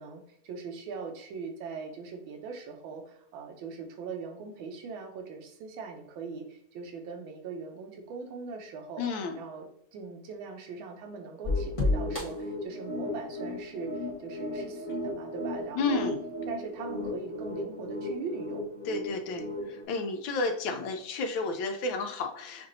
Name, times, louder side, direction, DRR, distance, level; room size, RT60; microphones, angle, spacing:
voice 1, 0.0-9.1 9.3-16.1 16.5-18.6, right 5 dB, 75° right, 4 dB, 1.5 m, -41 dB
voice 2, 9.0-9.4 15.7-16.2 18.8-22.7, left 3 dB, 75° left, 6 dB, 1.3 m, -31 dB
sound 1, 11.4-19.8, left 1 dB, 30° left, 0.6 m, -34 dB
6.0 x 2.5 x 2.6 m, 0.71 s
omnidirectional pair, 2.3 m